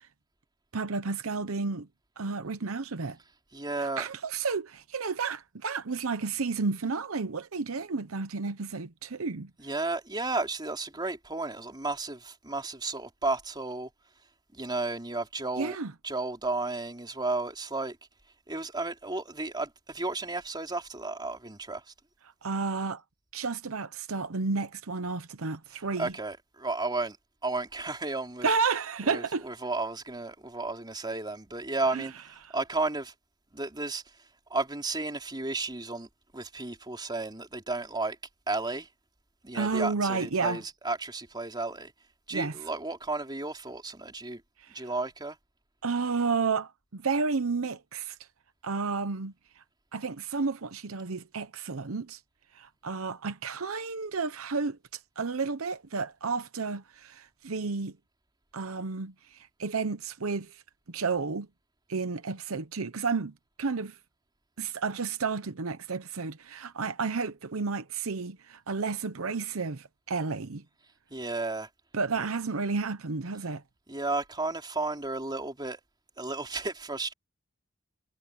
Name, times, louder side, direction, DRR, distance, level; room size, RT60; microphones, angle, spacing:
voice 1, 0.7-1.9 2.2-3.2 3.8-9.5 15.6-15.9 22.4-23.0 23.3-26.1 28.4-29.4 31.9-32.1 32.4-32.5 39.5-40.6 42.3-42.6 44.6-44.9 45.8-48.2 48.6-49.6 49.9-52.2 52.5-57.9 58.5-60.6 60.9-61.5 61.9-63.3 63.6-64.0 64.6-70.6 71.9-73.6, right 4 dB, 75° right, 0.9 m, -31 dB
voice 2, 3.5-4.1 9.6-13.9 14.5-15.8 16.0-18.0 18.5-21.8 26.0-27.2 27.4-28.5 29.0-33.1 33.5-34.0 34.5-38.2 38.5-38.9 39.4-41.9 42.3-44.4 44.7-45.4 71.1-71.7 72.2-72.3 73.9-75.8 76.2-77.1, right 3 dB, 20° right, 3.7 m, -33 dB
head